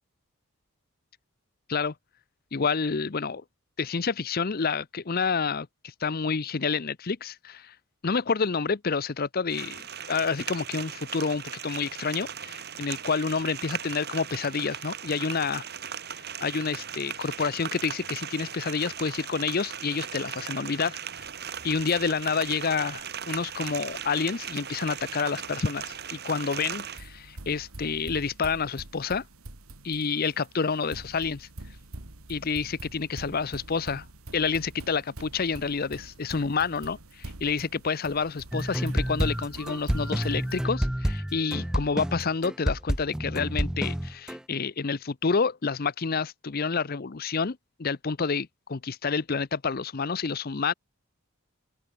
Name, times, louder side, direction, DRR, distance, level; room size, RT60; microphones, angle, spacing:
voice 1, 2.5-3.4 3.8-7.7 8.0-9.8 10.1-15.6 16.4-21.0 21.6-29.2 29.8-31.5 32.3-34.0 34.3-50.7, left 5 dB, 45° left, 0.6 m, -29 dB
sound 1, 9.5-27.0, right 8 dB, 50° right, 2.7 m, -38 dB
sound 2, 21.2-40.7, right 2 dB, 80° right, 2.3 m, -46 dB
sound 3, 38.5-44.4, equal, 5° right, 0.3 m, -29 dB
open air
head